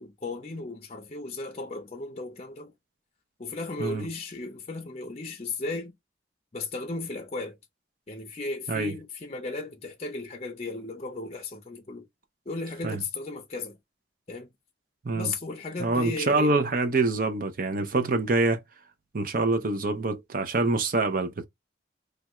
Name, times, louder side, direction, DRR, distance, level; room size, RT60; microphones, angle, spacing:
voice 1, 0.0-2.7 3.4-5.9 6.5-7.6 8.1-12.1 12.5-13.8 14.3-14.5 15.1-16.6, left 3 dB, 30° left, 0.5 m, -35 dB
voice 2, 15.8-18.6 19.1-21.4, right 3 dB, 45° right, 0.6 m, -25 dB
3.3 x 2.3 x 3.0 m
head